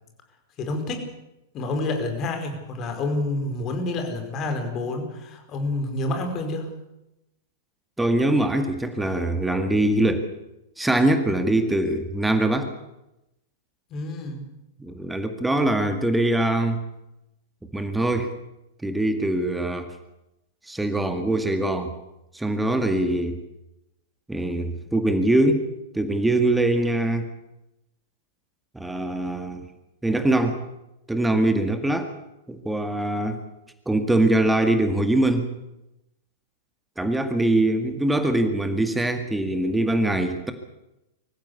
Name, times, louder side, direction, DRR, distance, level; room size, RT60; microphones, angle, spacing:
voice 1, 0.6-1.0 1.5-6.7 13.9-14.4, left 2 dB, 30° left, 5 dB, 5.0 m, -28 dB
voice 2, 8.0-10.3 10.8-12.7 14.8-16.8 17.7-18.3 18.8-19.9 20.7-21.9 22.3-23.4 24.3-25.7 25.9-27.2 28.7-29.7 30.0-30.6 31.1-32.1 32.5-33.4 33.9-35.5 37.0-40.5, right 1 dB, 5° right, 7 dB, 2.0 m, -23 dB
24.5 x 15.0 x 8.4 m, 0.91 s
figure-of-eight pair, 100°, 0 cm